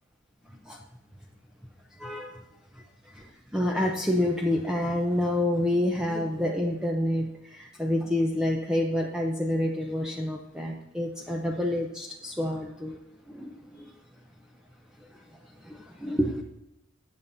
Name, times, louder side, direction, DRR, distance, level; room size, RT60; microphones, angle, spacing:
voice 1, 0.5-0.8 1.9-2.4 2.7-13.0 13.3-13.9 15.0-16.4, left 1 dB, 5° right, -1 dB, 0.7 m, -28 dB
20.0 x 7.1 x 2.7 m, 0.86 s
head